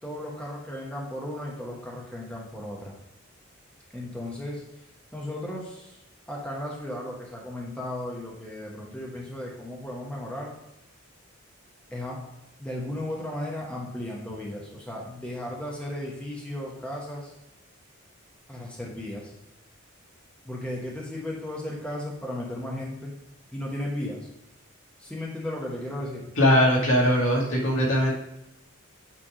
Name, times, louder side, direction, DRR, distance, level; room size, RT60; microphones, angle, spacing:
voice 1, 0.0-2.9 3.9-4.6 5.1-6.0 6.3-10.5 11.9-12.2 12.6-17.3 18.5-19.3 20.4-23.2 23.5-24.3 25.0-26.2, left 1 dB, 5° left, -4 dB, 1.1 m, -35 dB
voice 2, 26.4-28.1, equal, 70° left, -3 dB, 2.1 m, -20 dB
8.8 x 3.5 x 4.9 m, 0.86 s
head